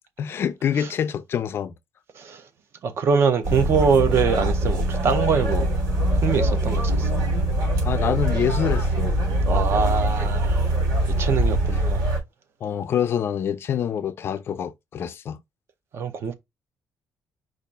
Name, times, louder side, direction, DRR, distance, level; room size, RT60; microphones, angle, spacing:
voice 1, 0.2-1.7 7.8-9.2 12.6-15.4, left 8 dB, 40° left, 0.4 m, -26 dB
voice 2, 2.8-5.7 6.1-7.1 9.5-10.7 11.2-12.1 15.9-16.3, right 6 dB, 40° right, 0.7 m, -23 dB
sound 1, 3.4-12.2, right 1 dB, 70° right, 2.6 m, -23 dB
5.0 x 2.5 x 4.2 m
cardioid pair, 175°, 6 cm